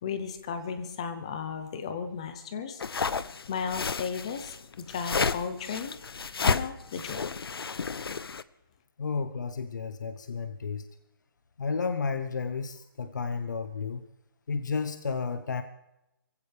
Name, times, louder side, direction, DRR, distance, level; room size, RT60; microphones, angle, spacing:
voice 1, 0.0-2.8 3.5-5.9 6.4-7.2, left 6 dB, 15° left, 9 dB, 0.7 m, -35 dB
sound 1, 2.8-8.4, left 5 dB, 85° left, 0.8 m, -31 dB
voice 2, 9.0-10.9 11.6-14.0 14.5-15.6, left 5 dB, 50° left, 9 dB, 0.9 m, -32 dB
23.5 x 15.5 x 3.4 m, 0.89 s
hypercardioid pair, 180°, 12 cm